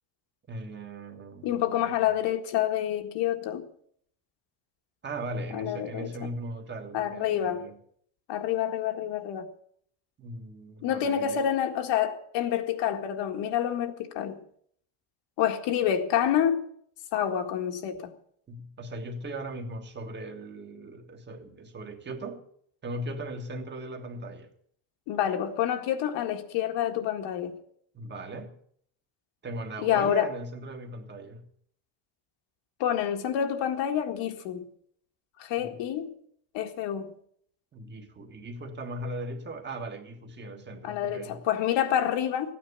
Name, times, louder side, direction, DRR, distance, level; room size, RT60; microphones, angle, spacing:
voice 1, 0.5-2.1 5.0-7.8 10.2-11.4 18.5-22.4 22.8-24.5 27.9-28.5 29.4-31.5 35.6-35.8 37.7-41.4, right 1 dB, 25° right, 1.7 m, -38 dB
voice 2, 1.4-3.6 5.5-6.3 6.9-7.6 8.3-9.5 10.8-14.4 15.4-16.6 17.1-18.1 25.1-27.6 29.8-30.3 32.8-34.7 35.4-36.1 36.5-37.2 40.8-42.5, left 10 dB, 70° left, 1.9 m, -28 dB
15.5 x 9.4 x 6.9 m
cardioid pair, 155°, 45 cm